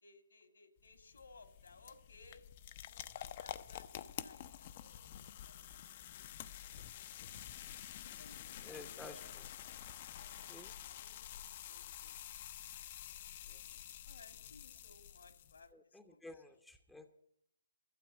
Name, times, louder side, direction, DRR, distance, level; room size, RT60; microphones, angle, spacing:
voice 1, 0.0-2.4 2.8-6.2 6.5-7.1 8.0-9.0 9.3-9.4 10.1-12.2 13.0-16.4, left 3 dB, 75° left, 7 dB, 2.2 m, -62 dB
sound 1, 0.8-15.7, left 11 dB, 40° left, 0.6 m, -49 dB
voice 2, 8.6-9.5 10.5-10.7 15.7-17.1, left 2 dB, 5° left, 7 dB, 0.7 m, -53 dB
13.0 x 7.7 x 8.8 m, 0.73 s
figure-of-eight pair, 145°, 0 cm